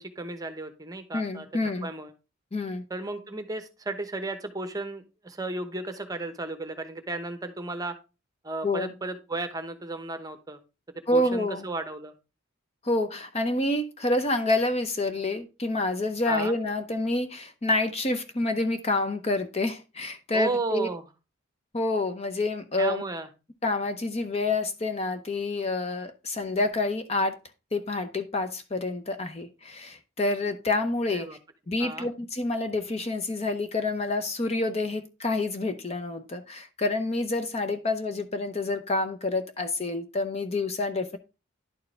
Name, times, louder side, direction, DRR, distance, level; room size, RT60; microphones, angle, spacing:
voice 1, 0.0-1.5 1.8-2.1 2.9-7.9 8.4-10.6 11.1-12.1 16.3-16.5 20.3-21.0 22.8-23.3 31.1-31.4 31.8-32.1, right 2 dB, 15° right, 0.9 m, -34 dB
voice 2, 1.1-1.9 2.5-2.8 8.6-8.9 11.1-11.7 12.8-20.9 21.7-23.0 23.6-27.4 27.7-31.3 31.7-41.2, left 2 dB, 30° left, 0.7 m, -28 dB
11.0 x 4.6 x 3.3 m
head